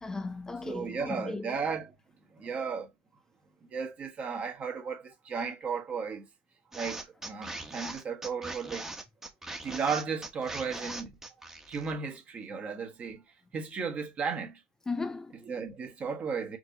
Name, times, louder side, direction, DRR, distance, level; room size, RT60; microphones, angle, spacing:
voice 1, 0.0-1.6 14.9-15.4, left 3 dB, 15° left, 0.3 m, -36 dB
voice 2, 0.6-1.9 2.3-2.9 3.7-6.2 6.7-8.9 9.6-11.2 11.7-13.2 13.5-14.6 15.4-16.6, right 5 dB, 40° right, 1.4 m, -35 dB
sound 1, 6.7-12.0, right 2 dB, 10° right, 1.0 m, -40 dB
4.5 x 2.8 x 2.8 m
supercardioid pair, 95°, 4 cm